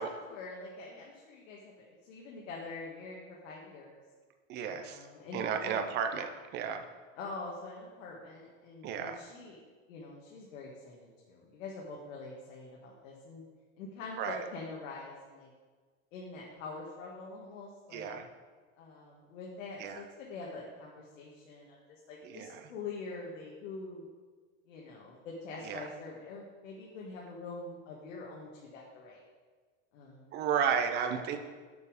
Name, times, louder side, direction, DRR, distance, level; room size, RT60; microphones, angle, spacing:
voice 1, 0.0-4.0 4.6-5.7 7.1-9.6 9.9-13.4 13.8-15.5 16.1-18.1 18.8-24.0 24.7-29.2 29.9-30.4, left 3 dB, 70° left, -3 dB, 1.6 m, -45 dB
voice 2, 4.5-5.0 5.3-6.8 8.8-9.2 14.2-14.4 17.9-18.3 19.8-20.0 22.2-22.6 25.6-25.9 30.3-31.4, right 7 dB, 25° right, 7 dB, 0.6 m, -33 dB
7.0 x 6.9 x 4.9 m, 1.5 s
supercardioid pair, 150°, 39 cm